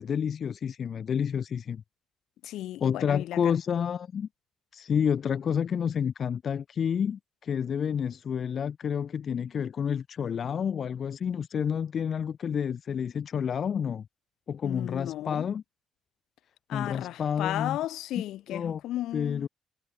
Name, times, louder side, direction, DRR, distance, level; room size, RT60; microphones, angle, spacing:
voice 1, 0.0-1.8 2.8-4.3 4.7-14.0 14.5-15.6 16.7-17.8 18.5-18.8 19.1-19.5, left 7 dB, 55° left, 1.5 m, -29 dB
voice 2, 2.4-3.5 14.6-15.5 16.7-19.5, left 14 dB, 85° left, 4.3 m, -34 dB
cardioid pair, 90°, 0 cm